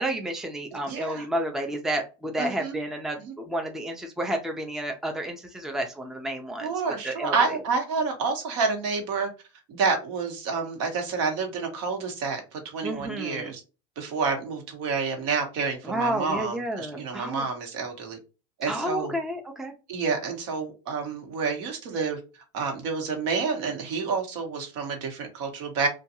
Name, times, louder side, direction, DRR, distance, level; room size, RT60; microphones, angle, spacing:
voice 1, 0.0-6.7 7.0-7.3 12.8-13.5 15.8-17.5 18.7-19.7, right 1 dB, 5° right, 3 dB, 0.4 m, -31 dB
voice 2, 0.8-1.3 2.4-2.8 3.2-3.3 6.6-9.3 9.7-13.6 14.0-18.2 18.6-19.2 19.9-22.2 22.5-25.9, right 4 dB, 70° right, 3 dB, 1.1 m, -29 dB
2.5 x 2.3 x 2.7 m, 0.31 s
supercardioid pair, 120°, 15 cm